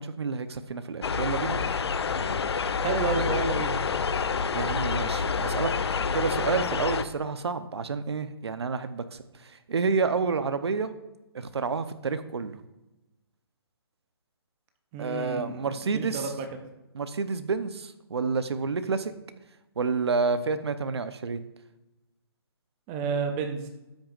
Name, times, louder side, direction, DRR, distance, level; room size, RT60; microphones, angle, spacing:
voice 1, 0.0-1.6 4.5-5.7 6.1-10.9 11.3-12.6 15.0-16.3 16.9-19.1 19.8-21.4, right 4 dB, 80° right, 10 dB, 0.9 m, -29 dB
sound 1, 1.0-7.0, left 5 dB, 75° left, 0.7 m, -28 dB
voice 2, 2.8-3.8 14.9-15.7 15.9-16.5 22.9-23.7, right 5 dB, 10° right, 6 dB, 0.4 m, -30 dB
13.0 x 9.0 x 2.5 m, 1.0 s
hypercardioid pair, 175°, 14 cm